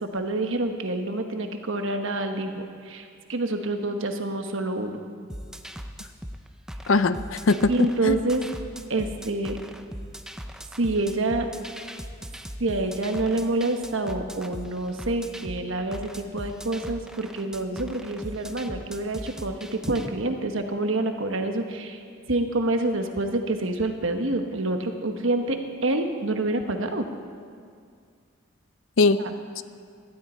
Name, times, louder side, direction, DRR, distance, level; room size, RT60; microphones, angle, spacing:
voice 1, 0.0-5.0 7.7-8.4 8.9-9.6 10.8-11.5 12.6-22.0 22.3-27.1 29.2-29.3, right 2 dB, 70° right, 5 dB, 1.2 m, -27 dB
sound 1, 5.3-20.1, equal, 5° right, 0.5 m, -39 dB
voice 2, 6.9-8.3 29.0-29.2, left 3 dB, 70° left, 13 dB, 0.6 m, -21 dB
17.5 x 13.0 x 4.4 m, 2.2 s
head